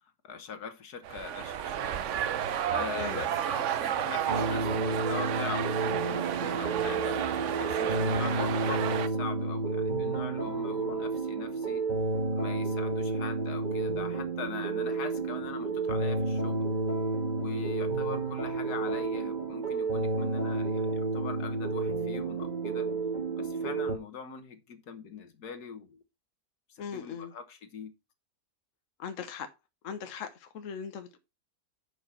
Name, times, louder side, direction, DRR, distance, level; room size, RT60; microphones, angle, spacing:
voice 1, 0.0-2.0 2.4-7.2 7.6-11.8 12.3-16.6 17.4-22.9 23.4-26.0 26.7-27.9, left 6 dB, 75° left, 1.8 m, -42 dB
sound 1, 1.0-9.1, right 9 dB, 60° right, 0.9 m, -32 dB
sound 2, 4.3-24.0, right 3 dB, 30° right, 1.5 m, -31 dB
voice 2, 26.8-27.3 29.0-29.5 29.8-31.2, left 7 dB, 55° left, 1.3 m, -39 dB
10.5 x 5.4 x 4.3 m
omnidirectional pair, 1.7 m